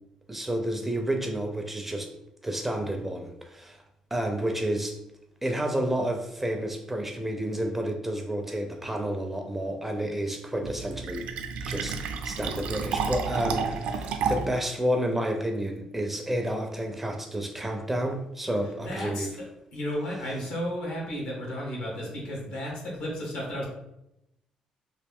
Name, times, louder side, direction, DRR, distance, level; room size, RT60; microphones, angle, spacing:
voice 1, 0.3-2.1 2.4-3.8 4.1-5.0 5.4-11.2 11.6-19.3, right 1 dB, 10° right, 4 dB, 0.4 m, -30 dB
Fill (with liquid), 10.6-14.6, right 5 dB, 75° right, 0.4 m, -31 dB
voice 2, 18.8-19.5 19.7-23.7, equal, 80° left, -3 dB, 1.5 m, -33 dB
3.1 x 2.7 x 3.5 m, 0.85 s
cardioid pair, 130°, 2 cm